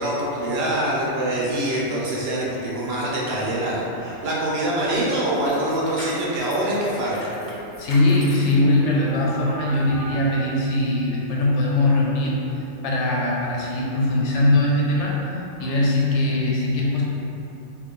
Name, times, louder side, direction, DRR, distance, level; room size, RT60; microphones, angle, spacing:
voice 1, 0.0-7.3, right 1 dB, 65° right, -5 dB, 0.9 m, -24 dB
sound 1, 3.0-9.2 9.7-9.8, left 1 dB, 50° left, 0.7 m, -41 dB
sound 2, 5.8-10.4, equal, 10° right, 0.8 m, -42 dB
voice 2, 7.8-15.3 15.6-17.0, left 1 dB, 85° left, -4 dB, 1.0 m, -21 dB
3.1 x 2.3 x 3.6 m, 2.9 s
omnidirectional pair, 1.2 m